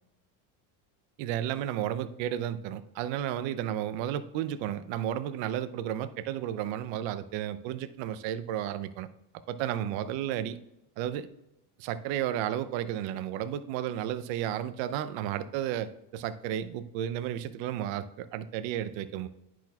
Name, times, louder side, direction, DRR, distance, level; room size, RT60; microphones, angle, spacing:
voice 1, 1.2-9.1 9.5-10.6 11.0-11.3 11.8-19.3, right 11 dB, 65° right, 13 dB, 0.7 m, -33 dB
10.0 x 6.1 x 2.3 m, 0.88 s
supercardioid pair, 100°, 49 cm